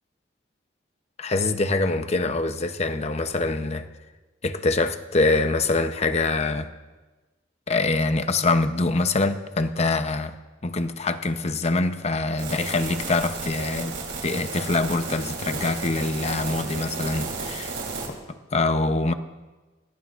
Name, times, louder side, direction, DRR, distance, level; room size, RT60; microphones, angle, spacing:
voice 1, 1.2-3.9 4.4-6.7 7.7-10.3 10.6-13.9 14.2-17.7 18.1-19.1, left 3 dB, 35° left, 0.8 m, -24 dB
sound 1, 12.4-18.1, right 4 dB, 75° right, 3.4 m, -33 dB
24.0 x 17.5 x 2.5 m
head